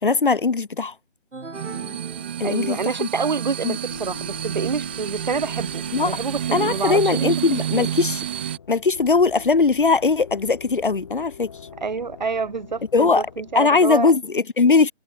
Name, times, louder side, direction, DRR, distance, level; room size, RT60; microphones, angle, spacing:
voice 1, 0.0-0.9 2.4-3.1 3.6-3.8 5.9-6.1 6.5-8.2 8.7-11.5 12.9-13.2 13.5-14.9, left 4 dB, 45° left, 2.9 m, -19 dB
sound 1, 1.3-3.2, right 3 dB, 75° right, 7.0 m, -39 dB
sound 2, 1.5-8.6, right 10 dB, 10° right, 1.7 m, -29 dB
voice 2, 2.4-7.4 7.7-7.9 11.8-14.1, right 5 dB, 35° right, 6.6 m, -27 dB
sound 3, 3.9-14.0, left 6 dB, 20° left, 2.9 m, -43 dB
figure-of-eight pair, 175°, 36 cm